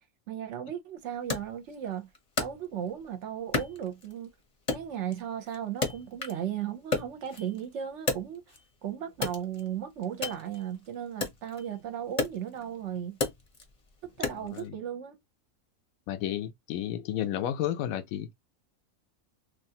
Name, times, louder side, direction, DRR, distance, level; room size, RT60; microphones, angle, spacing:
voice 1, 0.3-2.1 2.4-4.3 4.7-8.6 8.8-13.2 14.0-15.2, right 9 dB, 65° right, 0.9 m, -36 dB
Wood, 1.3-3.1 3.5-4.3 4.7-6.5 6.8-8.7 9.1-14.7, left 3 dB, 35° left, 0.7 m, -34 dB
voice 2, 14.3-14.8 16.1-18.3, left 11 dB, 80° left, 1.0 m, -32 dB
3.2 x 2.4 x 2.7 m
omnidirectional pair, 1.5 m